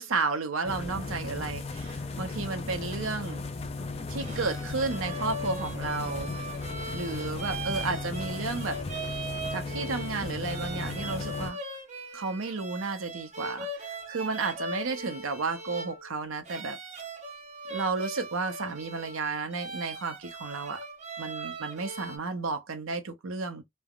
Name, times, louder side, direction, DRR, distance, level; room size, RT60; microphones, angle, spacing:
voice 1, 0.0-3.4 4.1-6.3 6.9-8.8 9.5-11.6 12.1-16.8 17.7-20.8 21.2-23.6, right 4 dB, 85° right, 0.6 m, -32 dB
sound 1, 0.6-11.5, left 3 dB, 30° left, 0.4 m, -36 dB
sound 2, 4.0-22.2, right 2 dB, 35° right, 0.6 m, -40 dB
3.3 x 2.0 x 2.3 m
head